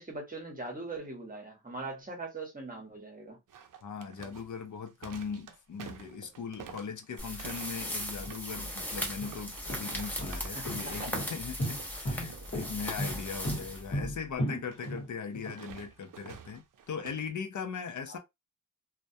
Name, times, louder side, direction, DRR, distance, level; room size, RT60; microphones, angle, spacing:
voice 1, 0.0-3.4 10.5-11.1 12.0-12.2 18.1-18.2, right 2 dB, 25° right, 0.9 m, -41 dB
sound 1, 3.5-11.4 11.6-11.9 12.2-12.6 14.6-17.3, right 8 dB, 80° right, 0.5 m, -49 dB
voice 2, 3.8-18.2, left 6 dB, 70° left, 0.5 m, -39 dB
sound 2, 7.2-14.3, equal, 5° left, 0.7 m, -38 dB
sound 3, 8.2-8.3 9.0-15.5, equal, 45° left, 1.1 m, -35 dB
2.2 x 2.1 x 2.6 m
wide cardioid pair, 115°, 32 cm